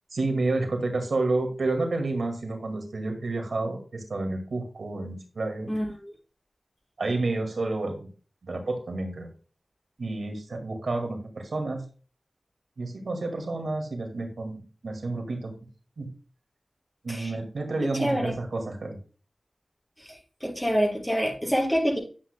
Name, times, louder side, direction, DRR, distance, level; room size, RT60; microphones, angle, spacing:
voice 1, 0.1-5.7 7.0-8.1 8.4-9.3 10.0-11.8 12.8-15.6 16.0-16.1 17.0-19.0, right 2 dB, 85° right, 4 dB, 2.0 m, -30 dB
voice 2, 18.0-18.3 20.0-22.0, equal, 10° left, -3 dB, 5.0 m, -26 dB
11.0 x 8.0 x 2.2 m, 0.37 s
wide cardioid pair, 85°, 0 cm